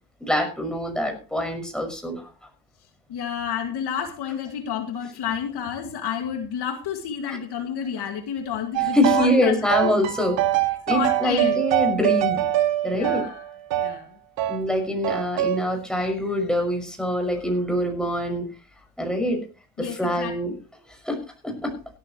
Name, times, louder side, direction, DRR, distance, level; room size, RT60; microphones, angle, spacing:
voice 1, 0.2-2.3 7.3-7.4 8.9-10.4 10.9-12.4 12.8-13.3 14.5-18.5 19.0-19.4 19.8-20.5 20.9-21.7, left 1 dB, ahead, 3 dB, 6.1 m, -25 dB
voice 2, 3.1-9.6 9.8-9.9 10.9-11.6 12.9-13.4 13.8-14.1 19.8-20.3, left 8 dB, 60° left, 5 dB, 2.2 m, -30 dB
sound 1, 8.7-9.4 9.7-14.0 14.4-14.6 15.0-15.6, right 13 dB, 75° right, 1.8 m, -24 dB
17.0 x 13.5 x 3.1 m, 0.34 s
supercardioid pair, 80°, 45 cm